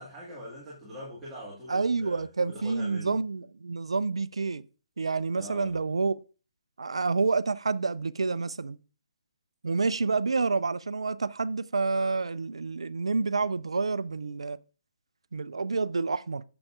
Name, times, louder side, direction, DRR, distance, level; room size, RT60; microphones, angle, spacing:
voice 1, 0.0-3.2 5.3-5.8, equal, 10° right, 1.9 m, -43 dB
voice 2, 1.7-4.6 5.0-6.2 6.8-8.8 9.6-14.6 15.3-16.4, right 4 dB, 65° right, 0.4 m, -28 dB
8.5 x 7.0 x 2.4 m
figure-of-eight pair, 140°, 3 cm